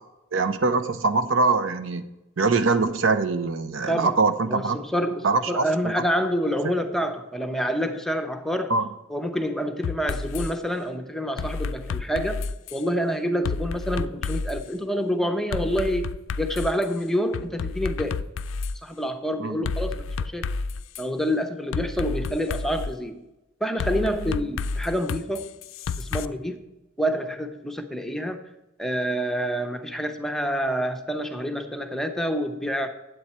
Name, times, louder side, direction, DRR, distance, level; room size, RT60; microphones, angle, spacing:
voice 1, 0.3-2.0 2.4-4.8 5.2-5.6 6.6-6.7 8.7-8.9 19.4-19.6, right 3 dB, 80° right, 10 dB, 0.6 m, -23 dB
voice 2, 3.9-4.2 4.5-8.7 9.1-12.4 12.7-18.2 18.8-20.5 21.0-23.2 23.6-25.5 26.0-26.6 27.0-28.4 28.8-32.9, equal, ahead, 6 dB, 0.6 m, -27 dB
sound 1, 9.8-10.5 11.4-12.8 13.4-14.6 15.5-16.8 17.3-18.8 19.7-21.0 21.7-22.9 23.8-26.3, left 4 dB, 85° left, 0.4 m, -30 dB
9.4 x 7.8 x 4.3 m, 0.96 s
head